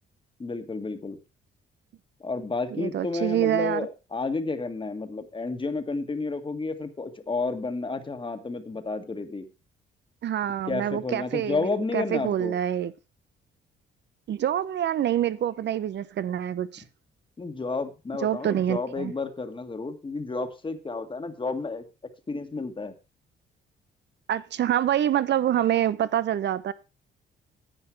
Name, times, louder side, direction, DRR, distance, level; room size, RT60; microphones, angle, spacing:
voice 1, 0.4-1.2 2.2-9.5 10.7-12.5 17.4-21.8 22.3-22.9, left 3 dB, 25° left, 1.8 m, -31 dB
voice 2, 2.7-3.9 10.2-12.9 14.3-16.8 18.2-19.1 24.3-26.7, right 11 dB, 60° right, 0.9 m, -26 dB
10.5 x 8.7 x 4.7 m
cardioid pair, 90°, 20 cm